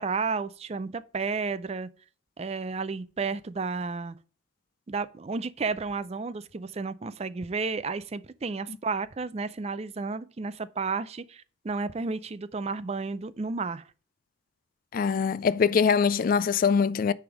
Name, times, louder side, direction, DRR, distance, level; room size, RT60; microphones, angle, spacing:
voice 1, 0.0-1.9 2.4-4.2 4.9-13.8, right 4 dB, 30° right, 0.4 m, -32 dB
voice 2, 14.9-17.1, left 6 dB, 45° left, 0.3 m, -23 dB
9.7 x 3.5 x 5.8 m
head